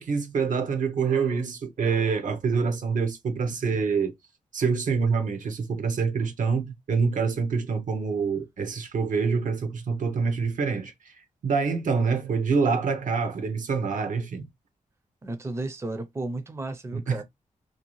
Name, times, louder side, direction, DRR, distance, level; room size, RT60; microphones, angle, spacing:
voice 1, 0.0-4.1 4.5-11.1 11.4-14.5 16.9-17.2, right 5 dB, 75° right, 0.7 m, -26 dB
voice 2, 15.2-17.2, right 2 dB, 20° right, 0.5 m, -33 dB
2.6 x 2.3 x 3.0 m
cardioid pair, 75°, 13 cm